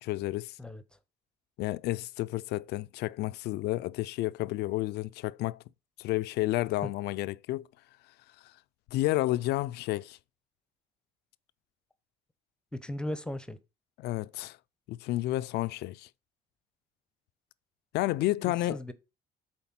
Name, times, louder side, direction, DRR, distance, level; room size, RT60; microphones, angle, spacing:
voice 1, 0.0-0.6 1.6-5.6 6.0-7.7 8.9-10.2 14.0-14.6 14.9-16.1 17.9-18.8, left 17 dB, 80° left, 0.4 m, -31 dB
voice 2, 12.7-13.6 18.4-18.9, left 1 dB, 5° left, 0.9 m, -37 dB
7.2 x 4.4 x 5.9 m
cardioid pair, 110°, 17 cm